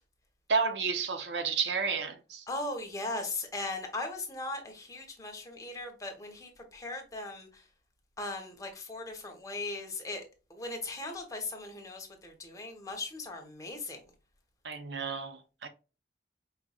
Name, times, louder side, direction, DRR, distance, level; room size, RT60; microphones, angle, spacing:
voice 1, 0.5-2.4 14.6-15.7, right 5 dB, 70° right, 0.7 m, -31 dB
voice 2, 2.5-7.6 8.2-10.2 10.5-14.0, left 2 dB, 20° left, 1.0 m, -38 dB
4.8 x 3.1 x 2.3 m
head